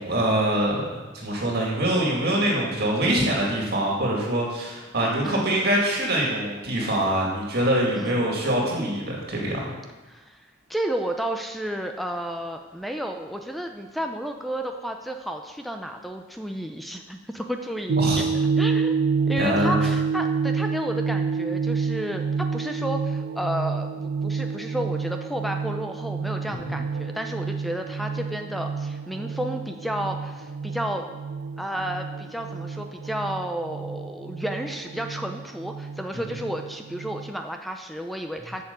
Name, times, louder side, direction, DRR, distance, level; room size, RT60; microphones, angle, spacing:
voice 1, 0.0-9.8 18.0-18.2 19.4-19.8 26.6-26.8, right 1 dB, 50° right, -2 dB, 2.3 m, -24 dB
voice 2, 7.9-8.3 10.1-10.4 10.7-18.3 18.6-19.0 19.3-23.9 24.2-31.1 31.6-38.6, equal, ahead, 4 dB, 0.5 m, -32 dB
sound 1, 17.9-37.3, right 5 dB, 90° right, 0.4 m, -28 dB
8.4 x 6.8 x 7.0 m, 1.2 s
head